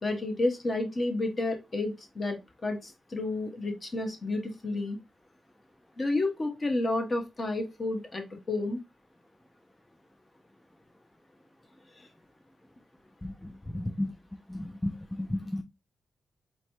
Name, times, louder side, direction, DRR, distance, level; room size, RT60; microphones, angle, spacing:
voice 1, 0.0-2.4 2.6-5.0 6.0-8.8, left 2 dB, 30° left, 4 dB, 1.0 m, -30 dB
voice 2, 13.2-14.1 14.5-15.6, left 1 dB, 5° left, 7 dB, 0.3 m, -34 dB
4.3 x 3.1 x 2.8 m, 0.24 s
wide cardioid pair, 125°, 0 cm